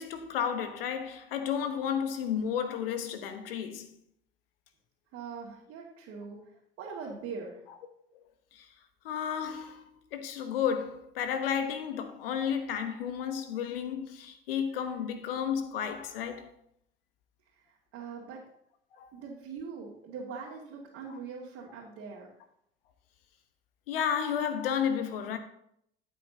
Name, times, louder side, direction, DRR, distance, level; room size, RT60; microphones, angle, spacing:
voice 1, 0.0-3.9 8.5-8.7 9.0-16.5 19.0-19.1 23.9-25.4, left 8 dB, 70° left, 1.1 m, -32 dB
voice 2, 5.1-6.4 6.8-7.6 17.9-18.4 19.1-22.3, right 5 dB, 55° right, 2.3 m, -41 dB
13.5 x 8.4 x 2.9 m
figure-of-eight pair, 60°, 29 cm